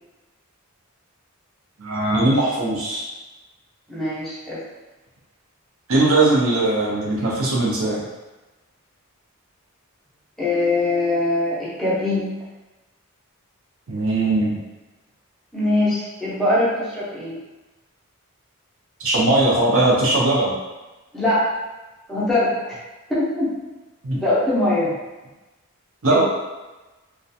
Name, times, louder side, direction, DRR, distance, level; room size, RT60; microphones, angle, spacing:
voice 1, 1.8-3.0 5.9-8.0 13.9-14.6 19.0-20.6 24.0-24.2 26.0-26.2, right 2 dB, 70° right, -4 dB, 0.7 m, -19 dB
voice 2, 3.9-4.6 10.4-12.4 15.5-17.4 21.1-21.5 22.1-22.8 23.2-23.5 24.1-24.9 26.1-26.2, left 2 dB, ahead, -10 dB, 0.6 m, -22 dB
2.4 x 2.2 x 2.6 m, 1.1 s
head